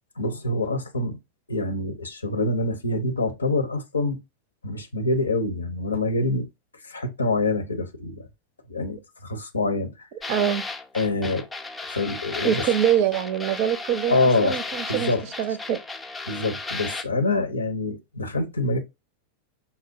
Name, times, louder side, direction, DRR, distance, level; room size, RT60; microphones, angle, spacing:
voice 1, 0.2-1.2 1.5-4.2 4.6-6.5 6.8-8.3 8.7-10.1 10.9-11.5 11.9-12.7 14.1-14.6 14.9-15.6 16.3-18.8, left 2 dB, 75° left, 0.7 m, -26 dB
sound 1, 10.2-17.0, left 3 dB, 10° left, 0.5 m, -34 dB
voice 2, 10.3-10.6 12.4-15.1 15.4-15.8, right 9 dB, 45° right, 0.5 m, -24 dB
5.3 x 2.0 x 2.5 m
figure-of-eight pair, 90°, 0 cm